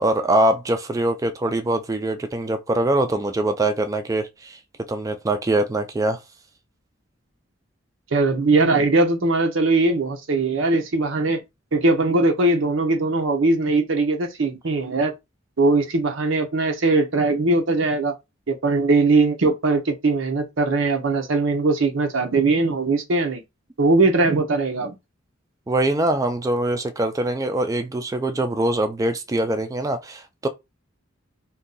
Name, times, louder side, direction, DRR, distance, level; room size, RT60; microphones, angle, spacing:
voice 1, 0.0-4.6 4.9-6.2 25.7-30.5, right 1 dB, 15° right, 0.3 m, -23 dB
voice 2, 8.1-11.4 11.7-15.1 15.6-18.1 18.5-23.4 23.8-24.9, right 3 dB, 90° right, 0.7 m, -20 dB
2.6 x 2.2 x 3.8 m
head